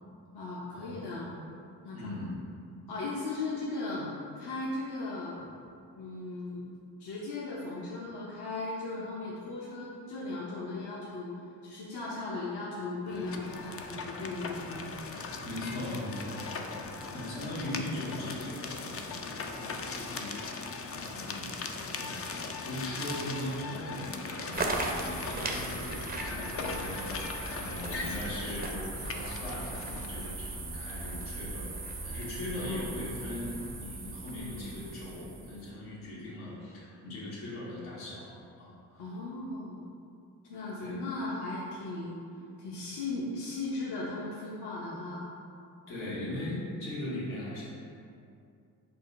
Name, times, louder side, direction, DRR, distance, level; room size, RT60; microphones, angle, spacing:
voice 1, 0.3-1.3 1.8-2.1 2.9-4.1 4.4-5.4 6.0-6.6 7.0-11.3 11.6-14.9 17.5-17.9 27.8-28.1 32.6-32.9 39.0-39.8 40.5-42.2 42.6-45.3, left 2 dB, 55° left, -5 dB, 0.8 m, -37 dB
voice 2, 1.9-2.3 15.4-21.5 21.9-31.7 32.0-39.1 40.8-41.0 45.9-47.6, left 1 dB, 80° left, -8 dB, 1.5 m, -40 dB
sound 1, 13.1-30.3, left 4 dB, 30° left, 0.4 m, -39 dB
sound 2, 24.5-35.7, right 2 dB, 20° right, 0.5 m, -38 dB
4.3 x 2.1 x 4.6 m, 2.5 s
hypercardioid pair, 40°, 47 cm